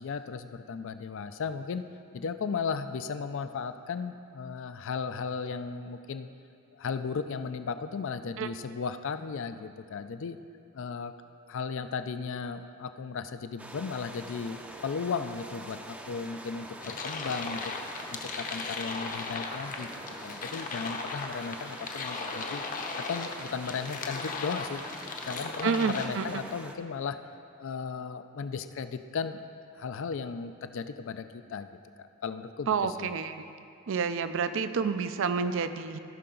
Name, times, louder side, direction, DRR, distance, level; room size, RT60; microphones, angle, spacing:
voice 1, 0.0-1.8 2.1-6.3 6.7-10.4 10.7-11.1 11.5-17.7 18.1-19.9 20.2-22.6 23.0-24.8 25.2-27.2 27.6-29.4 29.8-33.1, left 5 dB, 65° left, 10 dB, 0.4 m, -35 dB
sound 1, 13.6-26.7, right 1 dB, 5° right, 0.5 m, -45 dB
sound 2, 16.8-26.1, left 4 dB, 40° left, 0.8 m, -37 dB
voice 2, 25.6-26.4 32.7-33.4 33.9-36.0, right 5 dB, 65° right, 10 dB, 0.5 m, -29 dB
16.0 x 5.7 x 3.8 m, 2.5 s
head